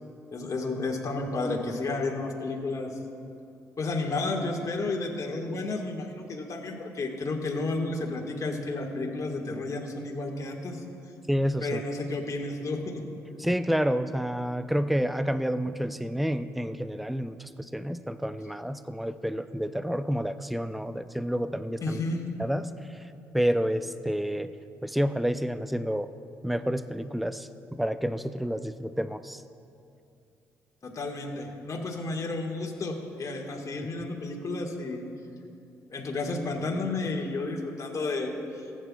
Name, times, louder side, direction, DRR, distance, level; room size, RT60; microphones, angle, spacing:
voice 1, 0.3-2.9 3.8-10.8 11.6-13.0 21.8-22.2 30.8-35.0 35.9-38.6, left 3 dB, 40° left, 1 dB, 1.8 m, -32 dB
voice 2, 11.3-11.8 13.4-22.0 22.4-22.6 23.3-24.5 24.8-26.1 26.4-29.4, equal, ahead, 12 dB, 0.5 m, -29 dB
19.0 x 9.2 x 2.4 m, 2.6 s
hypercardioid pair, 45°, 8 cm